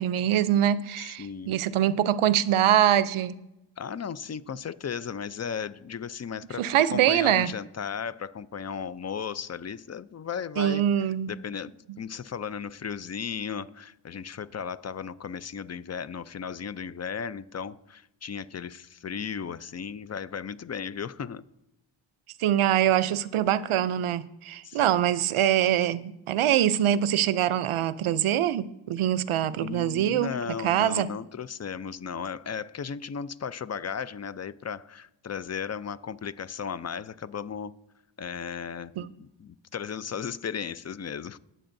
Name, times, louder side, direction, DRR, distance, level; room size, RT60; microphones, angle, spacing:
voice 1, 0.0-3.4 6.6-7.5 10.6-11.3 22.4-30.3 30.6-31.1 39.0-39.1, right 11 dB, 85° right, 0.6 m, -24 dB
voice 2, 1.0-1.6 3.8-10.8 11.3-11.7 12.0-21.4 24.6-25.0 29.5-37.7 38.2-41.4, left 7 dB, 35° left, 0.5 m, -35 dB
21.0 x 7.7 x 2.6 m
cardioid pair, 65°, 49 cm